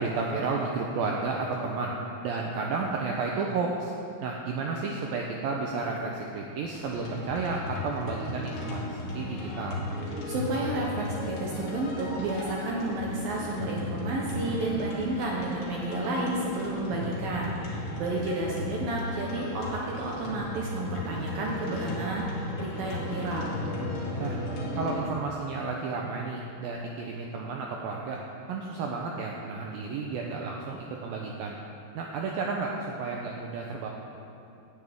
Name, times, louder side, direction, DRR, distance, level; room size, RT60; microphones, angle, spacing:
voice 1, 0.0-2.0 2.2-3.9 4.2-9.8 18.1-18.2 24.2-24.4 24.7-28.2 28.5-31.6 32.0-33.9, right 4 dB, 85° right, 0 dB, 2.1 m, -32 dB
sound 1, 6.7-25.0, left 2 dB, 65° left, 4.0 m, -35 dB
voice 2, 10.3-23.5, right 2 dB, 70° right, -2 dB, 2.4 m, -31 dB
17.5 x 10.5 x 3.6 m, 2.7 s
omnidirectional pair, 5.1 m